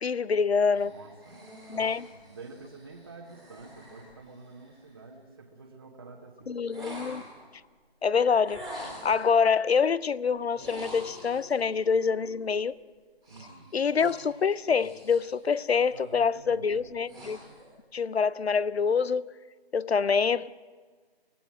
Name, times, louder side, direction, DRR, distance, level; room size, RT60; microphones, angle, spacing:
voice 1, 0.0-0.9 1.7-2.1 6.5-7.2 8.0-8.7 9.0-12.7 13.7-17.4 17.9-19.3 19.7-20.5, left 5 dB, 75° left, 0.6 m, -26 dB
sound 1, 0.7-4.9 6.7-7.5 8.5-9.3 10.5-11.6 13.2-15.3 15.7-16.1 16.6-17.7, equal, ahead, 2.1 m, -46 dB
voice 2, 0.8-7.3 13.3-13.7 15.9-16.9, right 3 dB, 20° right, 1.1 m, -49 dB
Telephone, 10.6-12.6, left 9 dB, 20° left, 0.8 m, -53 dB
24.5 x 17.0 x 6.2 m
figure-of-eight pair, 165°, 32 cm